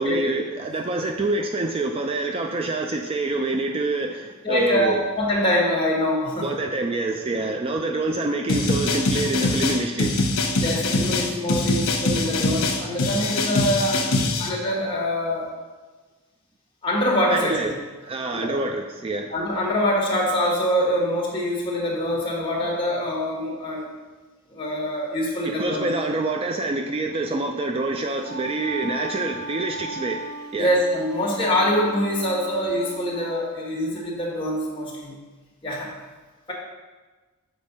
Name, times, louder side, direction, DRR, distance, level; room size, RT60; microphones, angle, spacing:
voice 1, 0.0-5.0 6.4-10.3 17.3-17.7 18.0-19.3 25.4-30.7, right 2 dB, 25° right, 4 dB, 0.3 m, -26 dB
voice 2, 4.4-6.5 10.6-14.0 14.4-15.5 16.8-17.7 18.3-18.5 19.3-23.9 24.5-25.9 30.6-35.1 35.6-36.0 36.5-36.6, equal, 25° left, -4 dB, 1.7 m, -24 dB
sound 1, 8.5-14.5, left 2 dB, 85° left, 1.0 m, -23 dB
Wind instrument woodwind instrument, 28.0-33.4, right 1 dB, 45° left, 1.0 m, -37 dB
7.2 x 4.3 x 5.2 m, 1.3 s
head